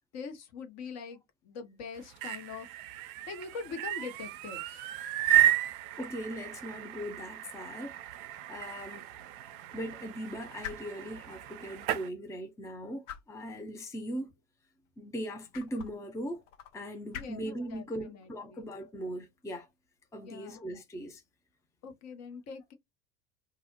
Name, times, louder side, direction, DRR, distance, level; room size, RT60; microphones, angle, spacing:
voice 1, 0.1-2.7 3.3-4.8 17.1-18.6 20.2-20.6 21.8-22.7, left 5 dB, 40° left, 0.9 m, -43 dB
sound 1, 2.0-12.1, right 14 dB, 50° right, 0.5 m, -33 dB
voice 2, 6.0-8.0 8.5-9.1 9.7-14.3 15.0-16.4 16.7-19.7 20.1-21.2, equal, 10° left, 0.6 m, -39 dB
sound 2, 7.7-21.2, left 9 dB, 70° left, 0.8 m, -52 dB
2.4 x 2.0 x 2.9 m
figure-of-eight pair, 70°, 38 cm